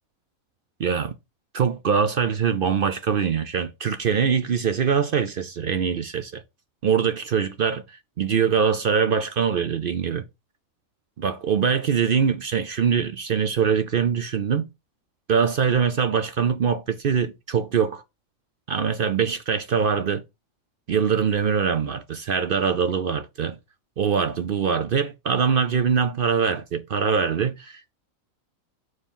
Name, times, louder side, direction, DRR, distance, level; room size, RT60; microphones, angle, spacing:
voice 1, 0.8-1.1 1.5-6.4 6.8-7.8 8.2-10.2 11.2-14.6 15.3-18.0 18.7-20.2 20.9-23.6 24.0-27.9, right 6 dB, 55° right, 0.6 m, -23 dB
7.0 x 3.2 x 5.4 m
omnidirectional pair, 1.4 m